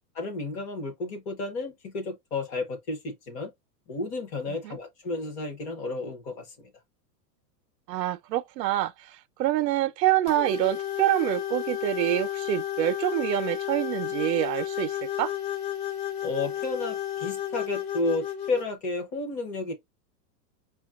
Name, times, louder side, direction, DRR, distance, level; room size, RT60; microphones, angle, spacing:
voice 1, 0.1-3.5 3.9-6.7 16.2-19.7, left 3 dB, 15° left, 0.5 m, -32 dB
voice 2, 7.9-15.3, right 14 dB, 85° right, 0.6 m, -26 dB
sound 1, 10.3-18.7, left 11 dB, 60° left, 1.0 m, -32 dB
5.0 x 2.3 x 2.3 m
supercardioid pair, 160°, 49 cm